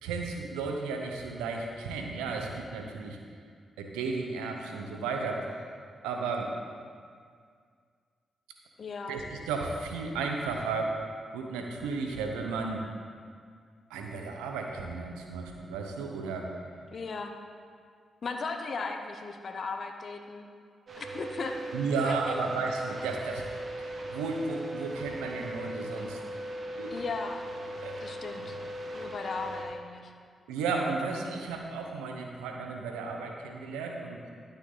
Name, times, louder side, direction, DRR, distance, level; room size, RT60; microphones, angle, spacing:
voice 1, 0.0-3.2 3.8-5.4 6.0-6.5 9.1-11.0 11.3-12.8 13.9-16.5 21.7-23.5 23.8-23.9 24.1-26.2 26.8-27.0 27.8-28.0 30.5-34.2, right 4 dB, 90° right, 2 dB, 0.8 m, -33 dB
voice 2, 8.8-9.1 16.9-17.3 18.2-20.5 21.0-21.6 22.0-22.4 26.9-27.4 28.0-28.6 28.9-30.1, left 4 dB, 60° left, 4 dB, 0.7 m, -36 dB
sound 1, 20.9-29.6, right 1 dB, 55° right, 1.4 m, -39 dB
12.0 x 6.8 x 3.9 m, 2.1 s
hypercardioid pair, 40°, 0 cm